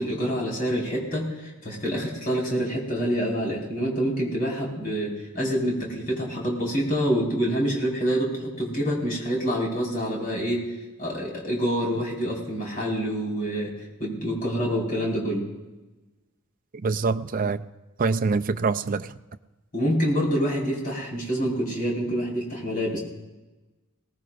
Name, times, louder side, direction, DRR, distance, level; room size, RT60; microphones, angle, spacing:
voice 1, 0.0-10.7 11.0-13.7 14.0-15.4 19.7-23.0, equal, 40° left, -3 dB, 4.7 m, -26 dB
voice 2, 16.7-17.7 18.0-19.1, right 4 dB, 40° right, 8 dB, 0.5 m, -25 dB
22.5 x 18.5 x 2.5 m, 1.1 s
head